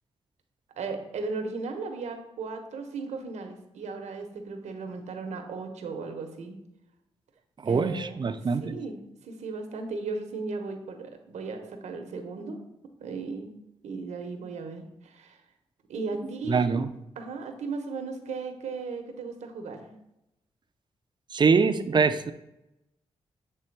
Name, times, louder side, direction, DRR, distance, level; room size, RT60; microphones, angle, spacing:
voice 1, 0.8-6.6 7.6-12.6 13.0-13.5 13.8-15.4 15.9-16.8 17.2-19.9, right 4 dB, 90° right, 5 dB, 0.9 m, -36 dB
voice 2, 7.6-8.8 16.5-16.9 21.3-22.3, right 5 dB, 40° right, 10 dB, 0.5 m, -24 dB
7.8 x 3.4 x 4.6 m, 0.89 s
cardioid pair, 75°, 12 cm